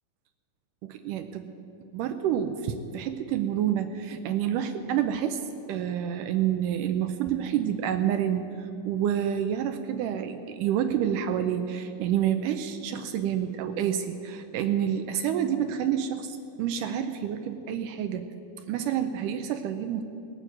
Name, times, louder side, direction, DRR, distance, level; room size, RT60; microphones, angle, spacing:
voice 1, 0.8-1.5 1.9-5.4 5.7-18.3 18.7-20.0, right 9 dB, 80° right, 8 dB, 2.1 m, -28 dB
19.0 x 9.2 x 7.5 m, 2.8 s
omnidirectional pair, 4.0 m